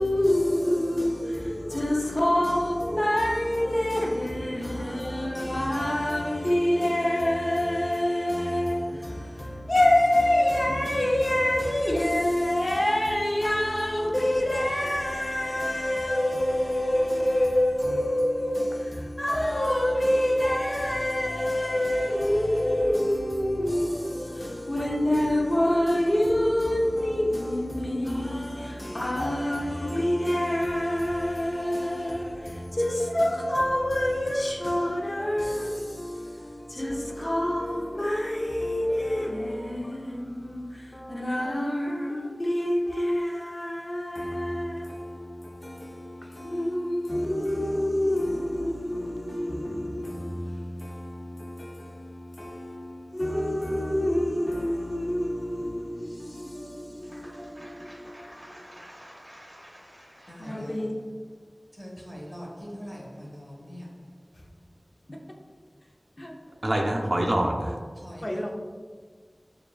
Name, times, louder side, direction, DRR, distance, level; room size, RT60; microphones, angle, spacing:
voice 1, 0.0-58.6 60.4-61.0 65.1-65.2 66.2-66.3 66.9-67.1 68.2-68.5, left 1 dB, 45° left, 0.7 m, -27 dB
voice 2, 57.0-60.8 61.7-64.2 68.0-68.5, equal, 5° right, 1.2 m, -44 dB
voice 3, 66.6-67.8, right 1 dB, 55° right, 0.5 m, -25 dB
6.9 x 2.5 x 2.3 m
wide cardioid pair, 50°, 0 cm